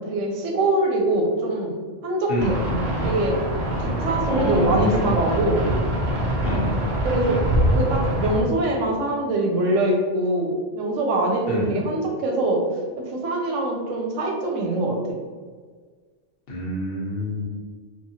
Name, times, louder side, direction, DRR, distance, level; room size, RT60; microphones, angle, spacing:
voice 1, 0.0-1.7 2.0-2.6 3.0-3.4 3.8-5.6 6.8-7.5 7.7-12.6 13.0-15.2, right 2 dB, 85° right, 0 dB, 1.0 m, -23 dB
sound 1, 2.4-8.4, equal, 60° right, 0.5 m, -24 dB
voice 2, 4.3-5.2 6.4-6.8 11.5-11.8 16.5-17.4, left 1 dB, 55° left, -4 dB, 0.9 m, -26 dB
3.0 x 2.2 x 2.7 m, 1.5 s
omnidirectional pair, 1.3 m